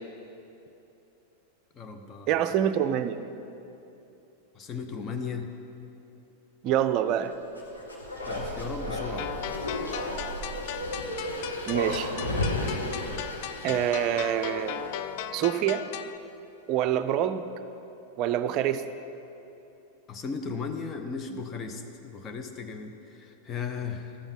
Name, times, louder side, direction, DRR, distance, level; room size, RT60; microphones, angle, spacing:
voice 1, 1.7-2.3 4.5-5.5 8.3-9.3 11.8-11.9 12.3-12.5 13.7-13.8 20.1-24.2, left 5 dB, 25° left, 5 dB, 0.7 m, -36 dB
voice 2, 2.3-3.2 6.6-7.3 11.7-12.1 13.6-14.8 15.3-15.9 16.7-17.5 18.2-18.8, right 10 dB, 40° right, 10 dB, 0.5 m, -26 dB
Bark, 7.5-15.1 15.4-15.5, left 1 dB, 80° left, 1.4 m, -33 dB
sound 1, 9.2-16.2, left 11 dB, 50° left, 0.4 m, -38 dB
13.0 x 7.1 x 5.4 m, 2.9 s
figure-of-eight pair, 90°, 0 cm